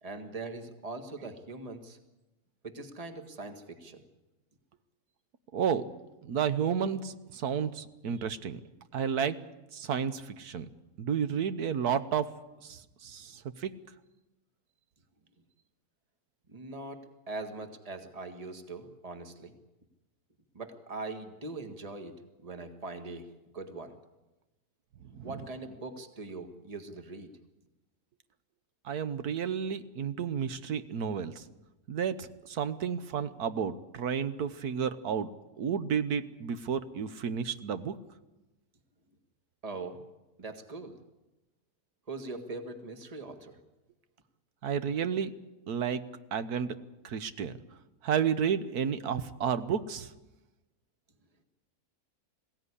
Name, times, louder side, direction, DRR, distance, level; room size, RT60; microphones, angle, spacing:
voice 1, 0.0-2.0 2.6-4.0 16.5-19.5 20.5-22.2 22.4-23.3 23.5-23.9 25.2-27.3 39.6-40.0 40.4-41.0 42.1-43.6, right 3 dB, 25° right, 6 dB, 1.8 m, -41 dB
voice 2, 5.5-5.8 6.2-8.6 8.9-9.4 9.7-10.7 11.0-12.3 12.6-13.7 25.2-25.4 28.8-31.4 31.9-35.3 35.6-38.0 44.6-45.3 45.7-46.0 46.3-46.8 47.0-47.5 48.0-50.1, right 7 dB, 80° right, 12 dB, 1.5 m, -31 dB
22.0 x 16.5 x 9.9 m, 1.0 s
omnidirectional pair, 1.6 m